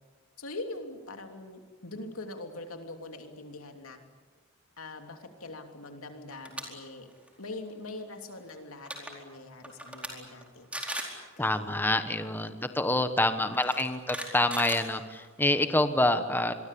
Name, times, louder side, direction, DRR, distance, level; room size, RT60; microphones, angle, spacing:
voice 1, 0.4-4.0 4.8-7.1 7.4-10.7 11.4-11.8, left 2 dB, 80° left, 5 dB, 3.1 m, -43 dB
sound 1, 6.3-6.6 7.0-7.3 8.5-8.6 8.8-9.1 9.6-10.1 10.4-10.5 10.7-11.2 12.4-12.5 13.5-15.4, right 1 dB, 5° right, 4.4 m, -37 dB
voice 2, 11.4-16.5, left 1 dB, 10° left, 9 dB, 1.1 m, -27 dB
26.5 x 22.5 x 8.6 m, 1.4 s
head